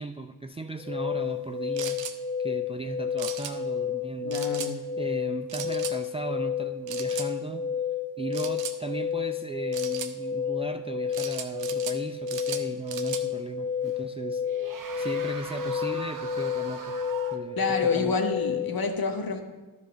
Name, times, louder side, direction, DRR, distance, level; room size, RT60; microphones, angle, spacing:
voice 1, 0.0-2.1 2.4-4.4 5.0-7.9 8.2-17.0 17.3-17.6 17.9-18.2, right 2 dB, 15° right, 7 dB, 0.4 m, -37 dB
sound 1, 0.8-18.9, left 7 dB, 10° left, 1.1 m, -31 dB
sound 2, 1.8-2.2 3.2-3.5 4.3-4.7 5.5-6.0 6.9-7.3 8.3-8.8 9.7-10.1 11.1-12.0 12.3-13.2, right 9 dB, 70° right, 0.9 m, -37 dB
voice 2, 4.2-4.8 17.6-19.4, left 4 dB, 50° left, 5 dB, 1.5 m, -28 dB
sound 3, 12.4-12.5 13.9-14.0 14.4-17.4, right 5 dB, 40° right, 1.1 m, -41 dB
11.5 x 5.1 x 6.4 m, 1.2 s
hypercardioid pair, 45°, 47 cm